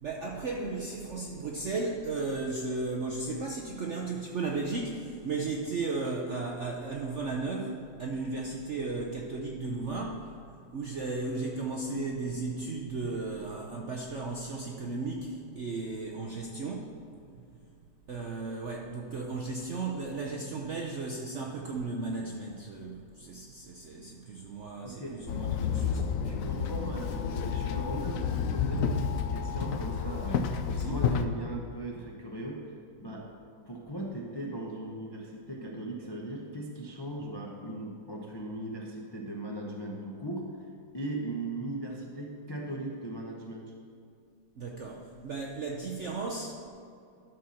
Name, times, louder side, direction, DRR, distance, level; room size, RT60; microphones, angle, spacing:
voice 1, 0.0-10.4 10.7-17.0 18.1-26.0 30.7-31.0 44.6-46.7, right 3 dB, 65° right, 0 dB, 0.7 m, -35 dB
voice 2, 24.8-25.2 25.6-25.7 26.2-32.7 33.0-33.3 33.7-40.7 40.9-43.7, right 1 dB, 35° left, -2 dB, 0.4 m, -38 dB
Walk footsteps / Chatter / Hiss, 25.3-31.2, left 7 dB, 80° left, 0.7 m, -30 dB
12.5 x 4.2 x 6.3 m, 2.5 s
omnidirectional pair, 2.0 m